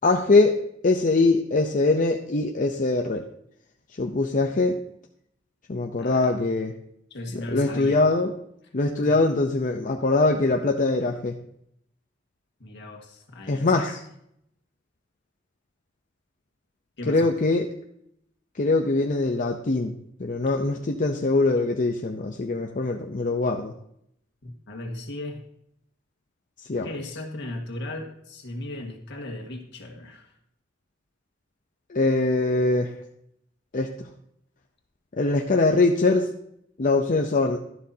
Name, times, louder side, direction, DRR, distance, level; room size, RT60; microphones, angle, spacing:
voice 1, 0.0-3.3 4.0-4.8 5.7-6.7 7.3-8.3 8.7-11.3 13.5-14.0 17.1-17.7 18.6-19.9 20.2-23.7 26.6-26.9 31.9-32.9 33.7-34.1 35.1-36.3 36.8-37.6, left 3 dB, 40° left, 3 dB, 0.7 m, -22 dB
voice 2, 6.0-6.4 7.1-8.0 9.0-9.2 12.6-14.0 17.0-17.3 24.4-25.4 26.8-30.3, left 1 dB, 60° left, 2 dB, 1.8 m, -36 dB
12.0 x 11.5 x 2.8 m, 0.74 s
head